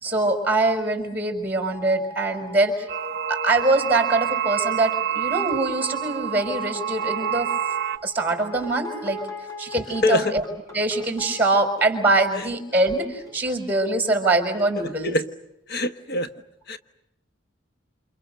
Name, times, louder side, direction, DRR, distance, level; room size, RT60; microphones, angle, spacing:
voice 1, 0.0-2.9 3.3-7.5 8.0-9.3 9.6-10.4 10.7-15.1, right 2 dB, 10° right, 6 dB, 5.6 m, -23 dB
sound 1, 1.7-3.5 5.8-13.4, left 1 dB, 15° left, 5.9 m, -40 dB
sound 2, 2.9-8.0, right 9 dB, 55° right, 0.9 m, -27 dB
voice 2, 10.0-10.3 15.0-15.2 15.7-16.3 16.7-16.8, left 2 dB, 55° left, 9 dB, 1.3 m, -23 dB
29.0 x 29.0 x 6.7 m, 0.85 s
head